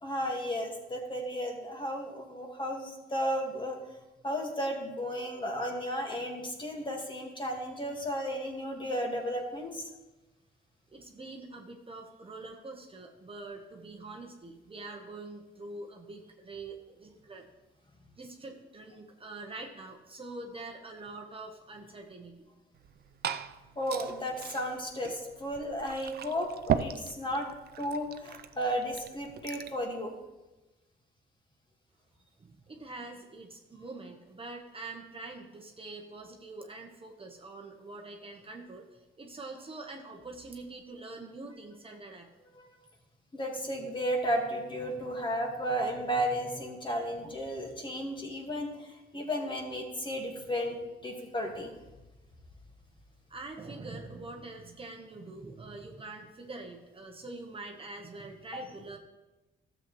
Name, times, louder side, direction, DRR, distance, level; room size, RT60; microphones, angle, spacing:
voice 1, 0.0-3.8 4.2-9.8 23.7-27.5 27.8-30.1 42.6-42.7 43.3-50.8 51.0-51.7 58.5-58.6, equal, 25° left, 2 dB, 1.8 m, -34 dB
voice 2, 10.9-17.4 18.2-22.4 32.4-42.3 53.3-59.0, right 3 dB, 30° right, 2 dB, 1.1 m, -45 dB
Liquid, 22.7-29.8, right 8 dB, 55° right, 0.5 m, -38 dB
12.5 x 7.5 x 3.2 m, 1.1 s
cardioid pair, 90°, 20 cm